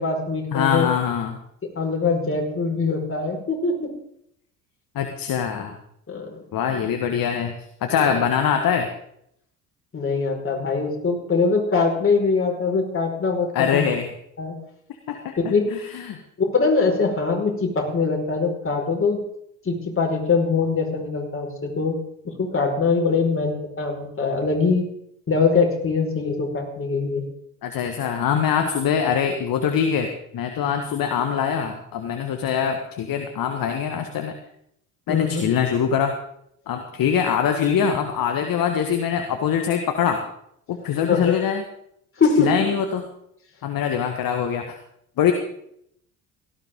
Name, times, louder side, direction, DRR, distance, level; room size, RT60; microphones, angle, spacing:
voice 1, 0.0-0.9 1.7-3.9 6.1-6.4 7.9-8.1 9.9-13.9 14.4-14.6 15.5-15.7 16.4-19.2 19.6-22.0 22.2-24.9 25.3-27.2 35.1-35.4 41.1-41.3 42.2-42.7, left 4 dB, 25° left, 0 dB, 5.1 m, -22 dB
voice 2, 0.5-1.4 4.9-5.7 6.5-8.9 13.5-14.1 15.1-16.2 27.6-34.3 35.1-36.1 36.7-40.2 40.7-41.6 42.4-43.0 43.6-44.8 45.2-45.3, left 8 dB, 45° left, 5 dB, 1.7 m, -23 dB
17.5 x 14.0 x 3.8 m, 0.72 s
figure-of-eight pair, 60°, 47 cm